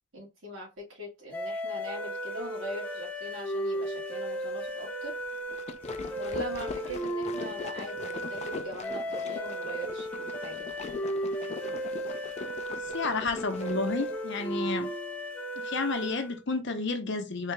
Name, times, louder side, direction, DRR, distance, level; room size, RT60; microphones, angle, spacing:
voice 1, 0.1-5.1 6.1-10.7, right 1 dB, 75° right, 2.4 m, -41 dB
sound 1, 1.3-16.4, equal, 5° left, 0.8 m, -35 dB
sound 2, 5.3-14.2, left 4 dB, 35° left, 0.4 m, -42 dB
voice 2, 12.9-14.9 15.6-17.5, left 3 dB, 65° left, 0.8 m, -31 dB
4.0 x 2.8 x 3.3 m
head